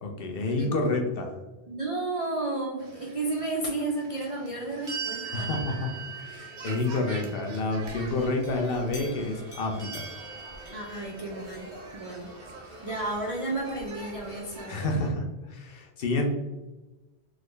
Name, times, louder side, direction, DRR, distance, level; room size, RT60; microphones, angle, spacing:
voice 1, 0.0-1.3 5.3-5.9 6.2-10.1 12.7-12.9 14.7-16.3, left 2 dB, 65° left, 2 dB, 0.7 m, -29 dB
voice 2, 1.7-5.5 10.7-12.3 12.8-14.8, right 2 dB, 55° right, -2 dB, 0.4 m, -32 dB
sound 1, 2.8-15.1, right 2 dB, 70° right, 0.9 m, -47 dB
sound 2, 4.9-8.0 9.8-11.5, right 6 dB, 20° right, 0.6 m, -40 dB
sound 3, 7.8-14.6, equal, 35° left, 0.9 m, -47 dB
3.6 x 2.0 x 3.2 m, 1.1 s
omnidirectional pair, 1.2 m